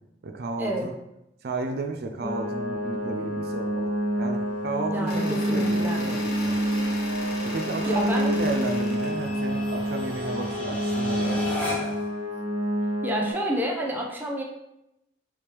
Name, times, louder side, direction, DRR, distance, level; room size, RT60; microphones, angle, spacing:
voice 1, 0.2-0.9 1.4-6.6 7.4-12.0, right 3 dB, 60° right, 5 dB, 0.4 m, -33 dB
sound 1, 1.8-12.1, left 1 dB, 10° left, 1.6 m, -39 dB
sound 2, 2.2-13.3, equal, 40° right, 1.1 m, -28 dB
voice 2, 4.9-6.0 7.9-8.4 13.0-14.4, equal, 10° right, -1 dB, 0.6 m, -29 dB
sound 3, 5.1-9.1, left 2 dB, 60° left, 0.9 m, -37 dB
4.7 x 3.4 x 3.0 m, 0.85 s
head